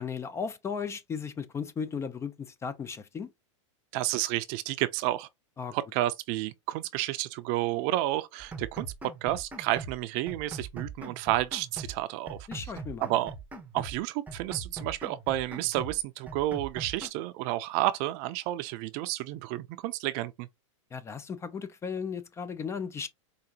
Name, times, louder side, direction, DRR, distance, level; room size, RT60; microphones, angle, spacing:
voice 1, 0.0-3.3 5.6-5.7 12.5-13.0 20.9-23.1, left 6 dB, 15° left, 0.4 m, -36 dB
voice 2, 3.9-5.3 5.7-12.4 13.0-13.3 13.7-20.5, right 15 dB, 45° right, 0.5 m, -31 dB
sound 1, 8.4-10.0 10.3-12.0 12.3-14.0 14.3-16.0 16.3-17.1, right 3 dB, 10° right, 0.7 m, -42 dB
4.8 x 2.6 x 2.8 m
hypercardioid pair, 120°, 16 cm